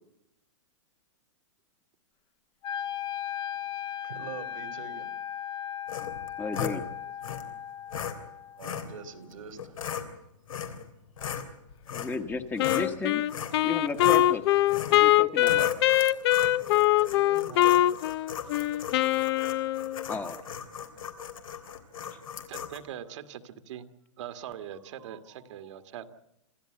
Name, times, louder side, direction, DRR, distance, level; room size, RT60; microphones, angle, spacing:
Wind instrument woodwind instrument, 2.6-8.7, left 9 dB, 30° left, 1.1 m, -37 dB
voice 1, 4.0-5.1 8.6-9.8 17.0-18.2, right 6 dB, 80° right, 11 dB, 3.0 m, -44 dB
sound 1, 5.9-6.8 7.2-7.4 7.9-8.1 8.6-8.9 9.6-10.0 10.5-10.8 11.2-12.9 13.3-13.6 13.9-14.3 14.7-15.0 15.4-22.8, left 8 dB, 90° left, 3.2 m, -37 dB
voice 2, 6.4-6.8 11.9-13.2 13.6-14.4 14.9-15.7 20.1-20.4, left 4 dB, 10° left, 7 dB, 1.3 m, -33 dB
Wind instrument woodwind instrument 2, 12.6-20.1, left 14 dB, 50° left, 0.7 m, -23 dB
voice 3, 22.5-23.9 24.2-26.1, right 10 dB, 65° right, 9 dB, 1.8 m, -41 dB
26.5 x 14.0 x 7.9 m, 0.85 s
hypercardioid pair, 140°, 17 cm